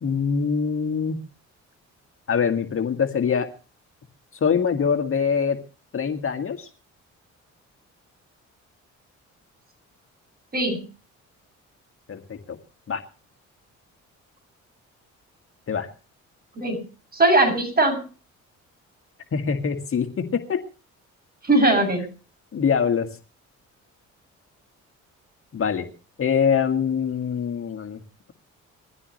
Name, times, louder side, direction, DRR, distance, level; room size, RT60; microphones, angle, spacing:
voice 1, 0.0-1.2 2.3-3.5 4.4-5.6 5.9-6.7 12.1-12.6 12.9-13.0 15.7-15.9 19.3-20.6 22.5-23.1 25.5-25.9 26.2-28.0, left 6 dB, 45° left, 5 dB, 1.9 m, -24 dB
voice 2, 10.5-10.8 16.6-16.8 17.1-18.0 21.4-22.0, right 2 dB, 30° right, 6 dB, 7.6 m, -19 dB
21.5 x 15.0 x 3.2 m, 0.36 s
cardioid pair, 90°, 30 cm